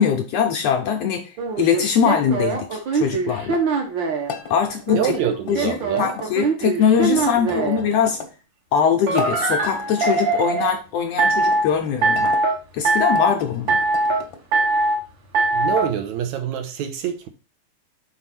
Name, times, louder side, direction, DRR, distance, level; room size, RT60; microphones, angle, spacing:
voice 1, 0.0-3.6 4.5-5.1 5.5-8.2 8.7-12.4 12.7-13.8, left 7 dB, 75° left, 1.6 m, -22 dB
sound 1, 1.4-4.3 4.9-7.8 9.1-10.7 11.2-11.7 12.0-12.5 12.8-13.3 13.7-14.2 14.5-15.0 15.3-15.9, right 3 dB, 50° right, 1.6 m, -21 dB
sound 2, 4.2-6.3 7.0-8.3 9.0-10.2 11.1-12.4 13.0-14.4, left 6 dB, 55° left, 1.4 m, -37 dB
voice 2, 4.9-6.1 7.1-7.2 7.5-7.9 15.5-17.3, right 9 dB, 75° right, 2.2 m, -26 dB
6.0 x 4.0 x 5.8 m
omnidirectional pair, 3.5 m